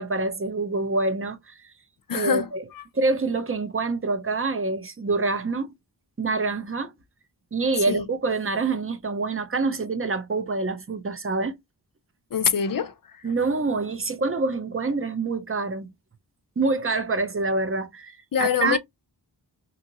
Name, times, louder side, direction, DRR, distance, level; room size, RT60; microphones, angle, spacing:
voice 1, 0.0-1.6 2.1-2.6 2.9-5.7 6.2-6.9 7.5-11.6 13.2-15.9 16.6-18.8, right 3 dB, 30° right, 0.8 m, -26 dB
voice 2, 2.1-2.8 7.9-8.1 12.3-13.2 18.3-18.8, left 7 dB, 50° left, 0.6 m, -25 dB
2.8 x 2.6 x 2.9 m
wide cardioid pair, 60°, 44 cm